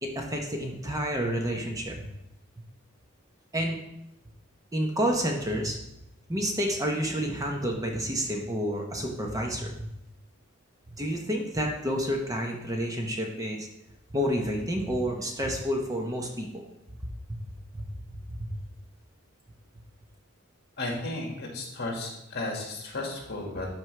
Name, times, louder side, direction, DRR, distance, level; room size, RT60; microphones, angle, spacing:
voice 1, 0.0-2.1 3.5-3.8 4.7-5.8 6.3-9.9 11.0-13.7 14.1-16.7 17.0-17.4 17.7-17.9 18.3-18.6, equal, 15° right, 1 dB, 0.8 m, -29 dB
voice 2, 20.8-23.7, left 2 dB, 55° left, 0 dB, 1.9 m, -34 dB
12.5 x 4.5 x 3.3 m, 0.86 s
head